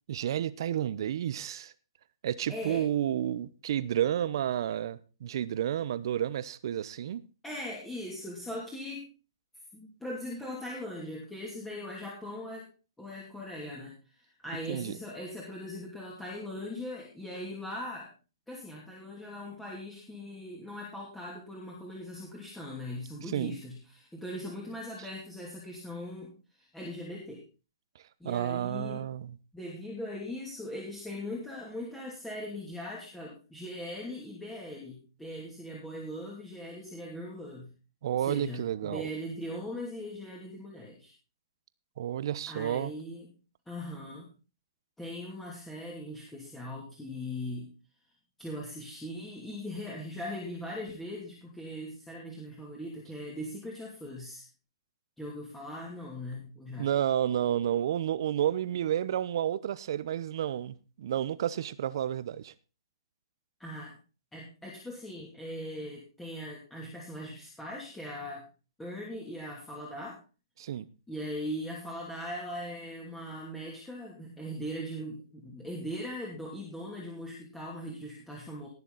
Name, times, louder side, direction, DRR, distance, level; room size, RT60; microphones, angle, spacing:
voice 1, 0.1-1.7 2.2-7.2 14.7-14.9 23.3-23.5 28.2-29.4 38.0-39.1 42.0-42.9 56.8-62.5 70.6-70.9, right 10 dB, 60° right, 0.9 m, -31 dB
voice 2, 2.5-2.9 7.4-9.0 9.7-12.7 13.0-18.1 18.5-27.5 28.2-29.1 29.5-37.7 38.1-41.1 42.5-43.3 43.7-44.3 45.0-47.7 48.4-54.5 55.2-56.9 63.6-63.9 64.3-68.4 68.8-70.2 71.1-78.7, left 1 dB, 5° left, 2.9 m, -40 dB
19.0 x 7.1 x 4.0 m
hypercardioid pair, 130°, 3 cm